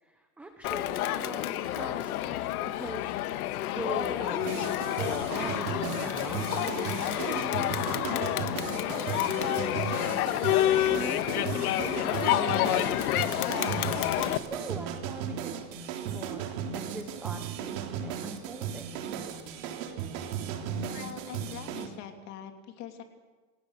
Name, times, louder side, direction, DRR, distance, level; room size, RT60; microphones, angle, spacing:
voice 1, 0.0-3.1 3.7-8.3 8.9-9.7 10.9-13.6 13.9-19.1, right 2 dB, 5° right, 5 dB, 0.6 m, -42 dB
Crowd, 0.6-14.4, left 13 dB, 60° left, 1.5 m, -29 dB
sound 1, 4.4-21.9, right 8 dB, 50° right, 3.4 m, -36 dB
voice 2, 20.8-23.0, left 9 dB, 30° left, 6 dB, 2.8 m, -43 dB
27.0 x 17.5 x 6.6 m, 1.3 s
supercardioid pair, 165°, 49 cm